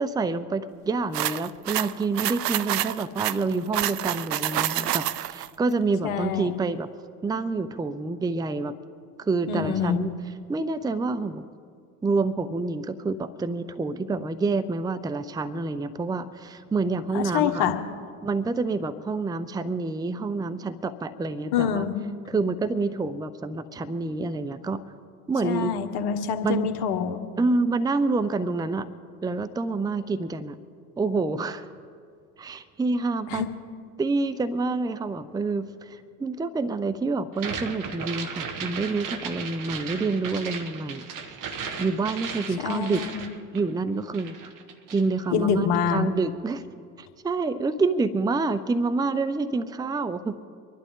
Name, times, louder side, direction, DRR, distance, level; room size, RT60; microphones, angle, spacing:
voice 1, 0.0-6.9 7.2-8.8 9.2-10.1 10.5-11.4 12.0-17.6 18.2-21.9 22.3-24.8 25.3-25.7 26.4-26.7 27.4-28.9 29.2-30.6 31.0-31.7 32.4-33.4 34.0-41.0 41.8-43.0 43.5-44.5 44.9-46.6 47.0-50.4, right 3 dB, 10° right, 13 dB, 0.6 m, -27 dB
sound 1, 1.1-5.5, right 13 dB, 85° right, 0.5 m, -28 dB
voice 2, 6.0-6.5 9.5-10.1 17.1-17.8 21.5-21.9 25.4-27.2 33.3-33.5 42.6-43.2 45.3-46.0, left 8 dB, 55° left, 5 dB, 1.6 m, -26 dB
sound 2, 37.3-43.9 44.1-45.1, right 5 dB, 45° right, 1.4 m, -36 dB
25.5 x 11.0 x 3.8 m, 2.2 s
hypercardioid pair, 70°, 46 cm